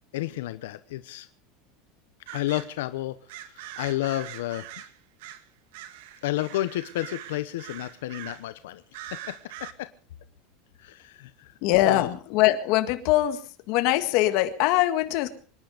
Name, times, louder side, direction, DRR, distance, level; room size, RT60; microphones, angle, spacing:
voice 1, 0.1-1.3 2.3-3.1 3.8-4.6 6.2-8.8 9.3-9.4 9.6-9.9 10.8-11.5 11.8-12.1, left 15 dB, 85° left, 11 dB, 0.9 m, -31 dB
sound 1, 2.3-2.7 3.3-5.5 5.7-8.5 8.9-9.7, right 12 dB, 70° right, 1.6 m, -42 dB
voice 2, 11.6-13.4 13.7-15.3, left 15 dB, 50° left, 9 dB, 1.8 m, -22 dB
25.5 x 10.5 x 5.1 m, 0.41 s
supercardioid pair, 165°, 0 cm